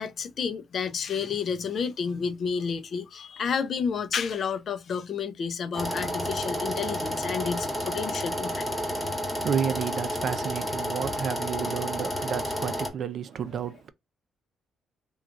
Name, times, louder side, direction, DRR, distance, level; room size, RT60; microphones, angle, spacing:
voice 1, 0.0-8.7, left 6 dB, 55° left, 0.5 m, -30 dB
sound 1, 5.7-12.9, equal, ahead, 1.1 m, -31 dB
voice 2, 9.4-13.9, right 8 dB, 60° right, 0.4 m, -31 dB
3.0 x 2.3 x 2.4 m
cardioid pair, 90°, 0 cm